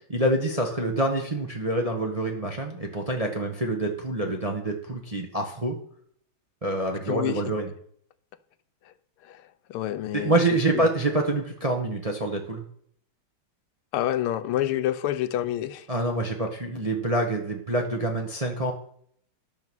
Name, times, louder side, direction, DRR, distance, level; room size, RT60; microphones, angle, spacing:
voice 1, 0.1-5.8 6.6-7.7 10.1-12.6 15.9-18.7, right 2 dB, 25° right, 0.8 m, -26 dB
voice 2, 7.1-7.4 9.2-9.4 9.7-10.4 10.7-10.9 13.9-15.9, left 12 dB, 85° left, 1.5 m, -28 dB
10.5 x 6.8 x 6.1 m
omnidirectional pair, 2.3 m